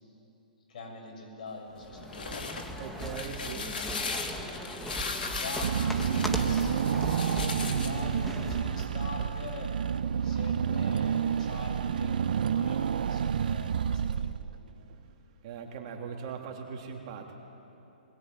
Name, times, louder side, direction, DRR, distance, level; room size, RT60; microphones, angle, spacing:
voice 1, 0.7-2.6 3.3-3.4 5.3-9.7 10.2-12.2 12.5-14.4, left 2 dB, 60° left, 1 dB, 6.9 m, -43 dB
sound 1, 1.8-8.9, equal, 5° left, 1.4 m, -38 dB
sound 2, 1.9-8.0, left 4 dB, 80° left, 3.0 m, -37 dB
voice 2, 2.8-3.7 15.4-17.4, right 6 dB, 40° right, 2 dB, 3.1 m, -40 dB
Car / Engine, 5.6-14.8, right 8 dB, 65° right, 0.7 m, -29 dB
21.5 x 21.0 x 9.3 m, 3.0 s
hypercardioid pair, 150°, 5 cm